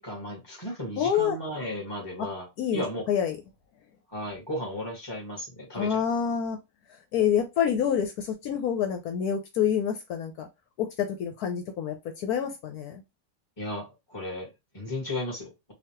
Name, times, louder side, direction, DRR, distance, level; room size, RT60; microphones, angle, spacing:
voice 1, 0.0-3.0 4.1-6.0 13.6-15.7, left 1 dB, 15° left, 1.9 m, -35 dB
voice 2, 1.0-1.4 2.6-3.4 5.7-6.6 7.1-10.5 10.8-13.0, left 8 dB, 75° left, 1.1 m, -27 dB
4.0 x 2.6 x 2.9 m
omnidirectional pair, 1.7 m